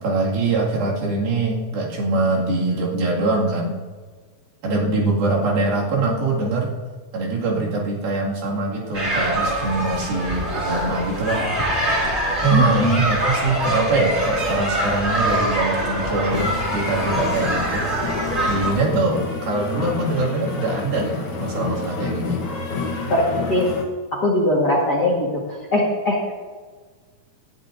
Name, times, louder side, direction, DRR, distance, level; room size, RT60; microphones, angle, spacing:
voice 1, 0.0-3.8 4.6-6.7 7.1-11.4 12.4-17.9 18.5-22.4, right 3 dB, 80° right, -4 dB, 4.1 m, -23 dB
sound 1, 8.9-18.7, right 1 dB, 25° right, 1.9 m, -24 dB
voice 2, 12.5-13.0 23.1-23.7 24.1-26.4, left 1 dB, 45° left, -3 dB, 1.4 m, -21 dB
sound 2, 16.3-23.8, left 4 dB, 85° left, 1.1 m, -29 dB
18.0 x 12.0 x 2.6 m, 1.5 s
omnidirectional pair, 4.2 m